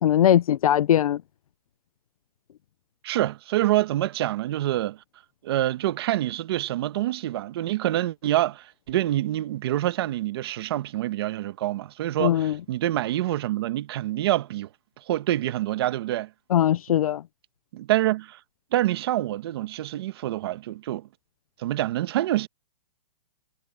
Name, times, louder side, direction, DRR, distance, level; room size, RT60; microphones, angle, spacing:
voice 1, 0.0-1.2 12.2-12.6 16.5-17.2, left 11 dB, 80° left, 0.6 m, -20 dB
voice 2, 3.0-5.0 5.4-14.7 15.1-16.3 17.7-18.4 18.7-21.1 21.6-22.5, right 14 dB, 45° right, 1.3 m, -26 dB
hypercardioid pair, 165°, 18 cm